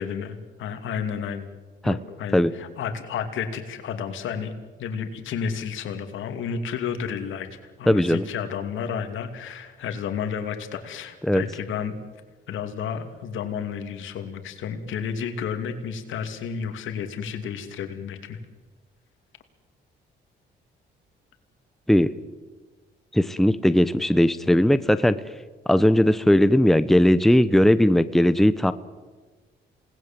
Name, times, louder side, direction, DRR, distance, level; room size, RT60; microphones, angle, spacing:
voice 1, 0.0-1.5 1.8-4.5 4.8-7.5 7.8-11.9 12.5-18.4, left 7 dB, 80° left, 7 dB, 2.7 m, -31 dB
voice 2, 7.9-8.2 11.2-11.4 21.9-22.1 23.1-25.2 25.7-28.7, left 1 dB, ahead, 13 dB, 0.9 m, -18 dB
28.5 x 19.5 x 7.6 m, 1.3 s
cardioid pair, 90°, 20 cm